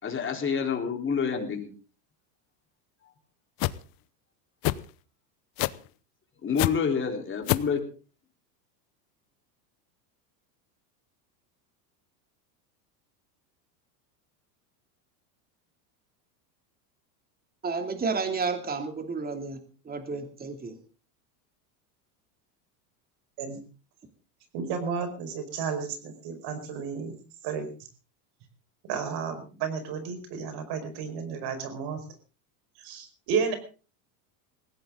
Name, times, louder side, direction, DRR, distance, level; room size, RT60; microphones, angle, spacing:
voice 1, 0.0-1.7 6.4-7.8, left 6 dB, 25° left, 2 dB, 4.1 m, -28 dB
sound 1, 3.6-3.8 4.6-4.8 5.6-5.9 6.6-6.7 7.5-7.7, left 19 dB, 45° left, 0.9 m, -25 dB
voice 2, 17.6-19.6 19.8-20.8, right 4 dB, 20° right, 6 dB, 2.8 m, -31 dB
voice 3, 24.5-27.2 27.4-27.7 28.9-32.0 32.8-33.5, right 6 dB, 55° right, 8 dB, 5.1 m, -32 dB
20.0 x 16.0 x 3.9 m, 0.37 s
supercardioid pair, 125°, 49 cm